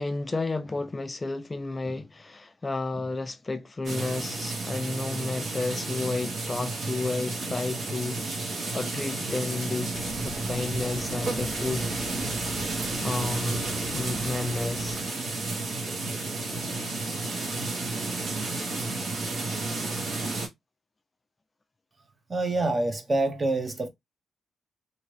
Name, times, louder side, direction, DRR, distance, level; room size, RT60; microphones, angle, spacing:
voice 1, 0.0-8.2 8.5-9.9 10.2-11.9 12.6-13.7 13.9-15.0 16.4-16.5, left 3 dB, 25° left, 0.3 m, -32 dB
sound 1, 3.8-20.5, right 3 dB, 60° right, 1.4 m, -32 dB
sound 2, 9.9-15.0, left 3 dB, 5° left, 1.4 m, -44 dB
voice 2, 22.3-23.9, right 2 dB, 30° right, 0.8 m, -26 dB
2.8 x 2.7 x 3.2 m
cardioid pair, 105°, 0 cm